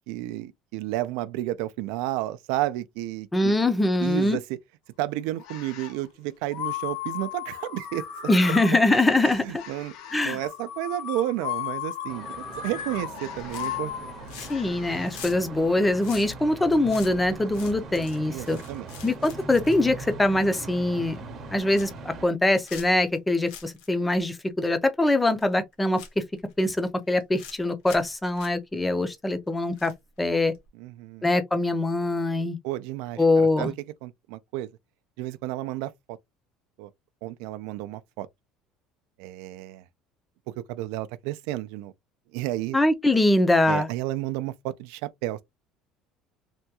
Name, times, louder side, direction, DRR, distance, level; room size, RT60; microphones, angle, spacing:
voice 1, 0.1-3.6 4.0-4.4 5.0-8.1 9.2-9.9 10.2-14.1 18.3-18.9 30.8-31.3 32.6-33.7 34.0-34.7 35.2-36.2 36.8-36.9 37.2-38.3 39.2-39.8 40.6-41.9 42.3-42.8 43.7-45.4, right 15 dB, 75° right, 0.3 m, -32 dB
voice 2, 3.3-4.4 8.3-9.6 10.1-10.4 14.5-18.6 19.0-21.2 21.5-26.2 26.6-29.9 30.2-30.5 31.2-32.6 33.2-33.7 42.7-43.9, left 2 dB, 10° left, 0.4 m, -23 dB
sound 1, 5.4-6.0 6.5-15.1, left 11 dB, 60° left, 0.8 m, -36 dB
sound 2, 12.1-22.3, right 3 dB, 30° right, 0.7 m, -40 dB
sound 3, 13.4-13.9 14.2-14.7 15.0-20.6 21.0-21.2 21.5-22.0 22.6-23.2 23.5-23.9 24.1-24.2 25.4-25.5 25.9-26.5 27.1-27.6 27.8-28.1 28.4-28.5 29.8-30.2 30.5-30.7, left 7 dB, 80° left, 1.1 m, -45 dB
3.4 x 2.2 x 2.8 m
cardioid pair, 180°, 0 cm